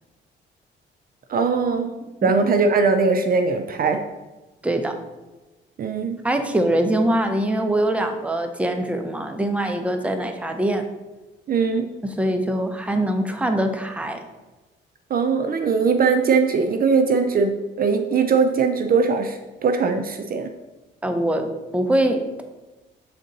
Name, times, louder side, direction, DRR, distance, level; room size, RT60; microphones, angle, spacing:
voice 1, 1.3-4.0 5.8-6.2 11.5-11.9 15.1-20.5, right 5 dB, 50° right, 7 dB, 0.5 m, -20 dB
voice 2, 4.6-5.0 6.2-10.8 12.2-14.3 21.0-22.4, right 1 dB, 5° right, 6 dB, 0.7 m, -23 dB
6.7 x 3.7 x 4.0 m, 1.1 s
cardioid pair, 90°, 20 cm